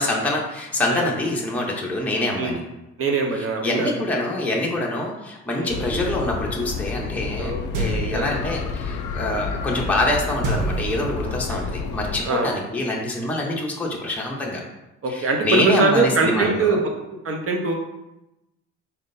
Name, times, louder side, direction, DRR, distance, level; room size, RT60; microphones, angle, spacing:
voice 1, 0.0-2.6 3.4-14.6 15.1-16.8, left 1 dB, 5° left, -3 dB, 0.8 m, -25 dB
voice 2, 3.0-4.1 5.5-5.8 7.4-8.5 11.3-11.6 12.2-12.5 15.0-16.9 17.2-17.7, right 3 dB, 50° right, 2 dB, 0.9 m, -23 dB
sound 1, 5.7-12.2, left 5 dB, 90° left, 0.5 m, -30 dB
sound 2, 7.7-8.4 10.4-11.4, right 3 dB, 90° right, 0.7 m, -27 dB
4.3 x 3.6 x 2.6 m, 0.92 s
cardioid pair, 90°, 30 cm